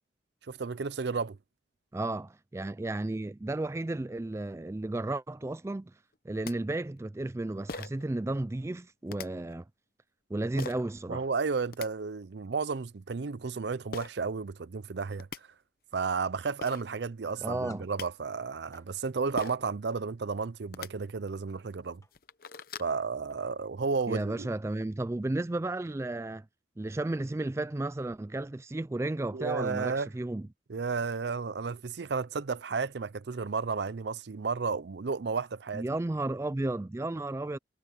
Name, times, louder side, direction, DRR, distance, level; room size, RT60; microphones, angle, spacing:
voice 1, 0.5-1.4 11.1-15.3 15.9-22.0 22.8-24.5 29.3-30.1 30.7-35.9, right 4 dB, 65° right, 0.5 m, -32 dB
voice 2, 1.9-5.9 6.2-9.6 10.3-11.2 17.4-17.9 24.1-26.4 26.8-30.5 35.7-37.6, right 2 dB, 15° right, 0.3 m, -33 dB
sound 1, 6.1-6.2 6.4-6.5 7.7-8.1 9.1-9.3 10.6-10.8 11.5-11.9 13.9-14.1 14.9-15.0 15.2-15.4 16.3-16.4 16.6-16.8 17.6-18.1 19.4-19.7 20.6-20.9 21.5-21.6 22.0-22.9, left 4 dB, 50° left, 0.8 m, -40 dB
sound 2, 17.3-17.9 18.5-18.9 19.9-20.1 20.8-21.2 22.0-22.1 22.4-22.5 23.3-23.5, left 4 dB, 15° left, 1.2 m, -56 dB
head